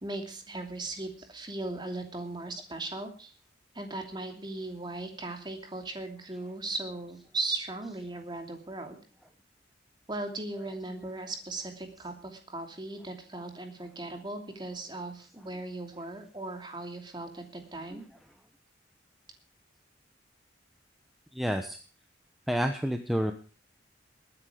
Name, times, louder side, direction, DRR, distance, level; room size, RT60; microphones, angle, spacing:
voice 1, 0.0-3.3 3.7-9.0 10.1-18.0, right 2 dB, 25° right, 5 dB, 2.7 m, -38 dB
voice 2, 21.3-21.8 22.5-23.3, equal, ahead, 5 dB, 1.0 m, -30 dB
21.0 x 9.8 x 5.0 m, 0.37 s
head